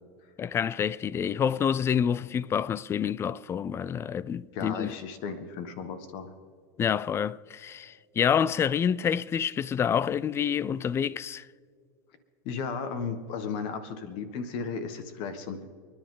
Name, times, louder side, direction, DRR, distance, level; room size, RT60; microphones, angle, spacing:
voice 1, 0.4-5.0 6.8-11.5, left 8 dB, 25° left, 0.5 m, -28 dB
voice 2, 4.5-6.3 12.4-15.6, left 5 dB, 60° left, 1.5 m, -35 dB
29.5 x 10.5 x 3.9 m
supercardioid pair, 120°, 10 cm